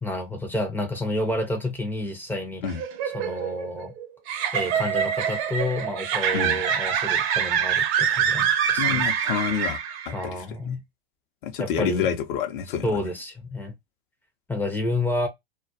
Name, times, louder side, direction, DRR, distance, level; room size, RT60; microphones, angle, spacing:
voice 1, 0.0-2.6 3.1-3.9 4.5-9.1 10.1-10.8 11.6-12.1 12.8-13.7 14.5-15.3, left 1 dB, 5° left, 0.5 m, -29 dB
sound 1, 2.6-10.2, right 8 dB, 40° right, 0.6 m, -25 dB
voice 2, 8.8-9.8 10.1-10.4 11.4-13.1, left 7 dB, 55° left, 0.7 m, -28 dB
2.3 x 2.0 x 2.6 m
hypercardioid pair, 100°, 30 cm